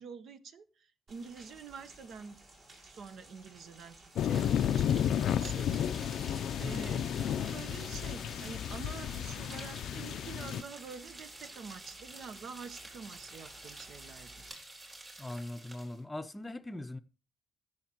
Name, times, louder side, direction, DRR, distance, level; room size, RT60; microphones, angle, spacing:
voice 1, 0.0-2.4 2.8-14.4, right 5 dB, 65° right, 0.8 m, -48 dB
Rain, 1.1-14.5, right 2 dB, 50° right, 5.0 m, -57 dB
sound 1, 4.1-10.6, left 9 dB, 75° left, 0.4 m, -32 dB
sound 2, 4.3-16.0, right 2 dB, 30° right, 3.7 m, -50 dB
voice 2, 6.6-7.1 15.2-17.0, left 1 dB, 15° left, 0.7 m, -41 dB
15.5 x 6.5 x 2.9 m
cardioid pair, 90°, 0 cm